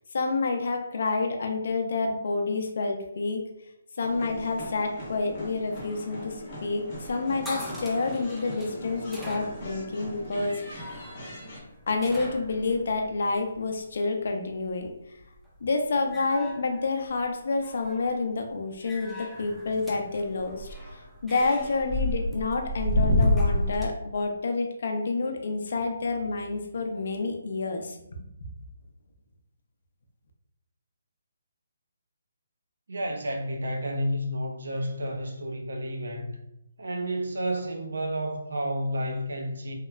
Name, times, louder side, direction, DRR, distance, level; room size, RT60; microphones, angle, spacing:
voice 1, 0.1-3.4 4.0-6.3 6.6-10.9 11.9-14.9 15.6-20.7 21.2-28.0, left 3 dB, 60° left, 0.4 m, -28 dB
sound 1, 4.0-11.6, equal, 25° left, 0.9 m, -41 dB
sound 2, 4.1-13.9 15.2-15.6 15.9-17.2 17.5-18.2 18.8-23.9, left 1 dB, ahead, 0.3 m, -32 dB
voice 2, 32.9-36.4 36.8-39.7, equal, 75° right, 0.5 m, -31 dB
2.9 x 2.0 x 2.3 m
hypercardioid pair, 160°, 0 cm